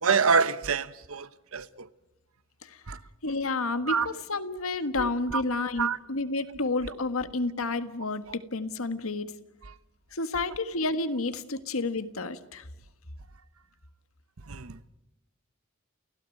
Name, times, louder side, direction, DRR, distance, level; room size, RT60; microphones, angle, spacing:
voice 1, 0.0-1.9 2.9-3.0 3.9-4.1 5.0-5.4 5.8-6.0 9.7-9.8 14.5-14.9, right 5 dB, 80° right, 1.0 m, -27 dB
voice 2, 3.2-9.3 10.1-12.6, left 3 dB, 80° left, 1.6 m, -30 dB
29.5 x 16.5 x 9.2 m
head